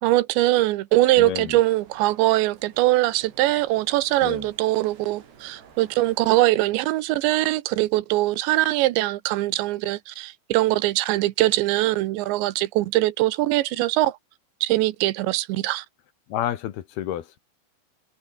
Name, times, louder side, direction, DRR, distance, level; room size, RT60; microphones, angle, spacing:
voice 1, 0.0-14.2 14.6-15.9, right 17 dB, 90° right, 3.3 m, -22 dB
sound 1, 1.0-6.5, right 7 dB, 70° right, 5.9 m, -52 dB
voice 2, 1.2-1.6 4.2-4.5 16.3-17.4, left 11 dB, 70° left, 3.2 m, -30 dB
omnidirectional pair, 5.0 m